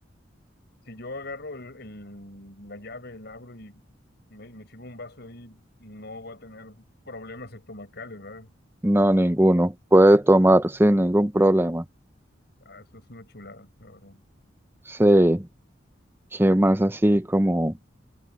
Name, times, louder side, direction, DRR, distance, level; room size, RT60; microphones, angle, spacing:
voice 1, 0.9-3.8 4.3-8.5 12.7-14.2, left 2 dB, 60° left, 5.5 m, -42 dB
voice 2, 8.8-11.8 14.9-15.5 16.4-17.7, right 1 dB, 10° right, 0.8 m, -18 dB
head